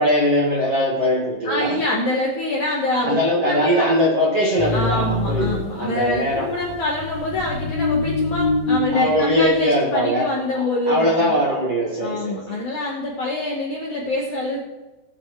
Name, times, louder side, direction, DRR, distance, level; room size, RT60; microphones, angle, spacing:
voice 1, 0.0-1.8 3.0-6.5 8.9-10.3 10.5-12.6, equal, 45° right, -4 dB, 2.1 m, -21 dB
voice 2, 1.4-3.2 3.4-3.9 4.7-11.3 12.0-14.6, left 2 dB, 60° left, -3 dB, 2.0 m, -25 dB
sound 1, 4.6-9.6, left 3 dB, 10° left, 3.0 m, -25 dB
19.0 x 9.9 x 3.3 m, 1.1 s
omnidirectional pair, 5.4 m